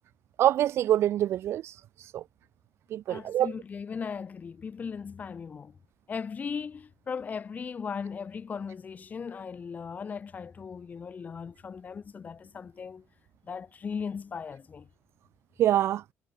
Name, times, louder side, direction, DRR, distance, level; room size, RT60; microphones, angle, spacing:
voice 1, 0.4-2.2 2.9-3.5 15.6-16.0, right 12 dB, 60° right, 0.6 m, -25 dB
voice 2, 3.1-5.8 6.1-13.0 13.5-14.9, left 6 dB, 35° left, 3.0 m, -38 dB
cardioid pair, 125°, 5 cm